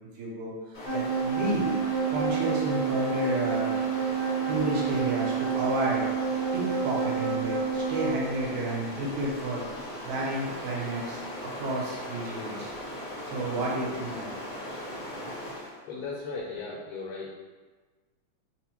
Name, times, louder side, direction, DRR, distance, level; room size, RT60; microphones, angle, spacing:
voice 1, 0.2-0.5 0.9-1.7 2.1-3.7 4.5-6.1 6.5-9.6 10.0-11.3 11.6-12.7 13.3-14.3 15.0-15.1, right 1 dB, 75° right, -3 dB, 2.0 m, -31 dB
Stream, 0.7-15.8, left 1 dB, 70° left, 0.8 m, -39 dB
sound 1, 0.9-8.3, right 6 dB, 50° right, 1.8 m, -29 dB
voice 2, 13.5-13.8 15.9-17.3, left 4 dB, 85° left, -4 dB, 2.0 m, -37 dB
4.6 x 2.1 x 2.9 m, 1.3 s
omnidirectional pair, 3.4 m